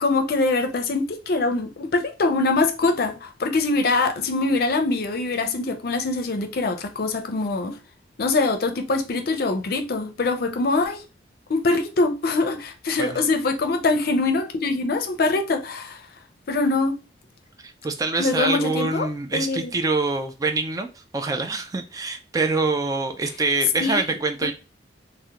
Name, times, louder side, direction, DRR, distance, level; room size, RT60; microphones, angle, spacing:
voice 1, 0.0-7.8 8.2-11.0 11.5-16.0 16.5-17.0 18.2-19.1 19.3-19.6 23.8-24.0, left 3 dB, 55° left, 0.5 m, -23 dB
voice 2, 17.6-24.5, right 3 dB, 20° right, 0.3 m, -25 dB
3.6 x 2.1 x 2.8 m
head